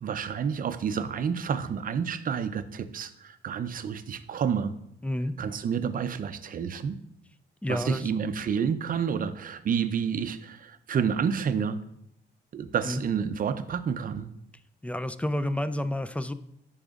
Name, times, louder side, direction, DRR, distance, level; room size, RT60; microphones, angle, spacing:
voice 1, 0.0-4.7 5.4-7.0 7.7-11.8 12.5-14.3, right 7 dB, 45° right, 11 dB, 0.5 m, -29 dB
voice 2, 5.0-5.3 7.6-8.0 12.8-13.0 14.8-16.3, left 1 dB, 5° left, 13 dB, 0.3 m, -29 dB
10.5 x 4.9 x 2.4 m, 0.77 s
cardioid pair, 90°, 20 cm